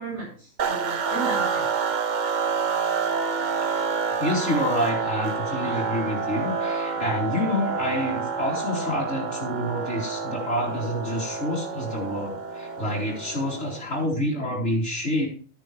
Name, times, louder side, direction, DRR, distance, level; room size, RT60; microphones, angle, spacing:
voice 1, 0.0-2.2, right 4 dB, 55° right, -3 dB, 7.7 m, -36 dB
sound 1, 0.6-14.0, right 5 dB, 40° right, 0.8 m, -28 dB
voice 2, 4.2-15.3, left 1 dB, 60° left, -7 dB, 3.8 m, -28 dB
13.0 x 10.0 x 3.3 m, 0.41 s
omnidirectional pair, 1.4 m